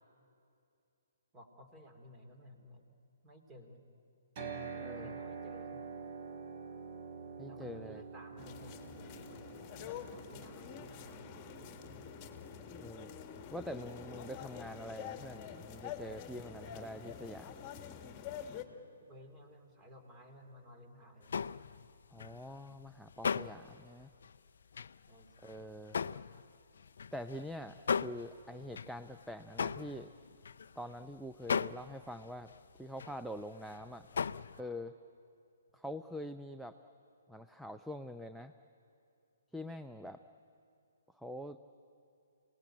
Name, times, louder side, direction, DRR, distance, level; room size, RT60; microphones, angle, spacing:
voice 1, 1.3-3.0 3.2-3.9 4.9-5.8 7.5-11.6 19.1-21.3 25.1-25.5, left 1 dB, 20° right, 5 dB, 3.0 m, -56 dB
sound 1, 4.4-18.5, right 5 dB, 40° right, 3.1 m, -49 dB
voice 2, 4.8-5.2 7.4-8.0 12.8-13.1 13.5-17.6 22.1-24.1 25.4-26.0 27.1-30.1 30.8-32.5 32.8-34.1 34.6-34.9 35.7-36.8 37.3-38.5 39.5-40.2 41.1-41.6, equal, ahead, 8 dB, 0.6 m, -45 dB
sound 2, 8.4-18.6, left 8 dB, 25° left, 1.7 m, -47 dB
sound 3, 21.2-31.0 31.4-33.4 33.7-34.6, left 6 dB, 60° left, 0.5 m, -38 dB
27.5 x 18.5 x 8.9 m, 2.6 s
figure-of-eight pair, 130°, 0 cm